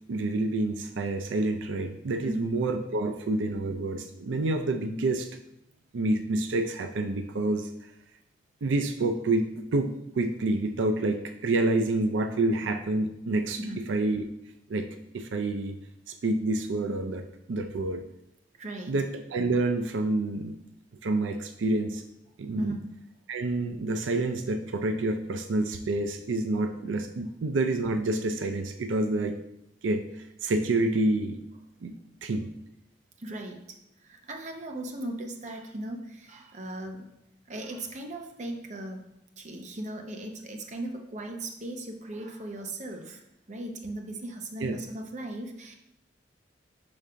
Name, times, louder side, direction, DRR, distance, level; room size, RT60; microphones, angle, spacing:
voice 1, 0.1-5.3 5.9-7.7 8.6-13.6 13.9-14.3 14.7-14.9 15.1-15.8 16.1-18.0 18.9-20.6 21.0-22.0 22.4-22.7 23.3-29.4 29.8-31.4 31.8-32.5 44.6-44.8, right 2 dB, 85° right, 7 dB, 0.4 m, -28 dB
voice 2, 2.2-2.5 13.6-13.8 18.6-19.0 22.6-22.8 33.2-33.6 34.0-37.0 37.5-39.1 39.4-43.2 43.5-45.8, right 1 dB, 40° right, 3 dB, 0.7 m, -37 dB
5.3 x 3.6 x 5.6 m, 0.83 s
head